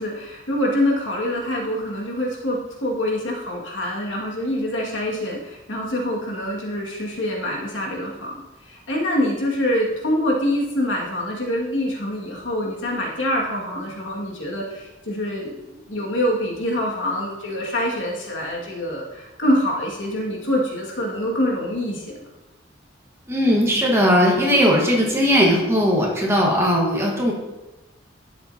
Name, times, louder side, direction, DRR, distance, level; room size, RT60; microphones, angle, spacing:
voice 1, 0.0-8.4 8.6-22.3, left 1 dB, 80° left, -2 dB, 2.0 m, -25 dB
voice 2, 23.3-27.3, equal, 15° right, -2 dB, 1.4 m, -18 dB
11.0 x 7.4 x 2.8 m, 1.1 s
head